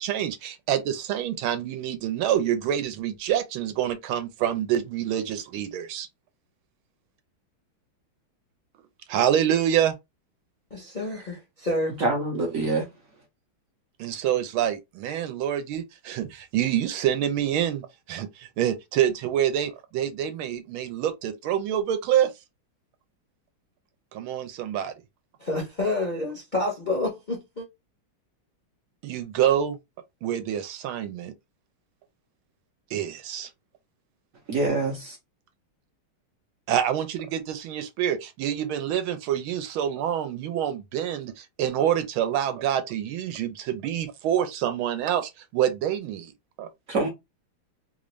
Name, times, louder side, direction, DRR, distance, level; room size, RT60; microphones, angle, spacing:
voice 1, 0.0-6.1 9.1-9.9 14.0-22.3 24.1-24.9 29.0-29.8 30.2-31.3 32.9-33.5 36.7-46.3 46.6-46.7, right 10 dB, 80° right, 1.5 m, -26 dB
voice 2, 10.7-12.0 25.4-27.7, left 2 dB, 40° left, 0.6 m, -28 dB
voice 3, 12.0-12.9 34.5-35.2 46.9-47.1, right 2 dB, 60° right, 0.9 m, -25 dB
3.6 x 2.5 x 3.1 m
omnidirectional pair, 2.3 m